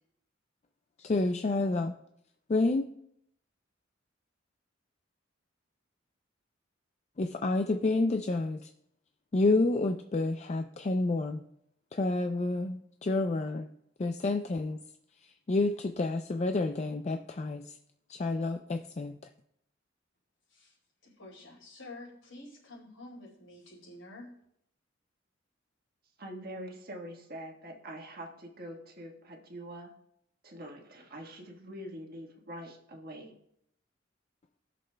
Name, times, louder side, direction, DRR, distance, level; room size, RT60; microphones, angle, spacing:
voice 1, 1.0-2.0 2.5-2.9 7.2-8.7 9.3-11.4 11.9-13.7 14.0-14.8 15.2-17.6 18.1-19.2, left 2 dB, 35° left, 6 dB, 0.4 m, -29 dB
voice 2, 21.0-24.3, left 2 dB, 80° left, -1 dB, 4.0 m, -49 dB
voice 3, 26.2-29.9 30.4-33.3, right 1 dB, 50° right, 2 dB, 1.4 m, -44 dB
19.0 x 6.6 x 2.2 m, 0.74 s
head